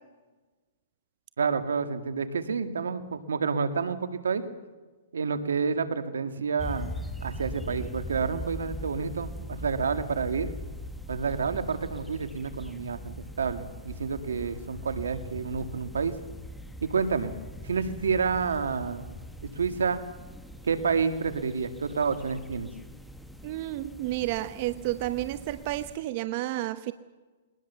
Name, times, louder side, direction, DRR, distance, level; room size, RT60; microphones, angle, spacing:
voice 1, 1.4-4.5 5.1-10.5 11.1-16.2 16.8-17.3 17.6-19.1 19.4-20.0 20.6-22.7, right 5 dB, 90° right, 9 dB, 1.9 m, -29 dB
sound 1, 6.6-26.0, equal, ahead, 1.3 m, -41 dB
voice 2, 23.4-26.9, right 16 dB, 45° right, 12 dB, 0.9 m, -31 dB
22.0 x 19.5 x 6.9 m, 1.3 s
hypercardioid pair, 140°, 0 cm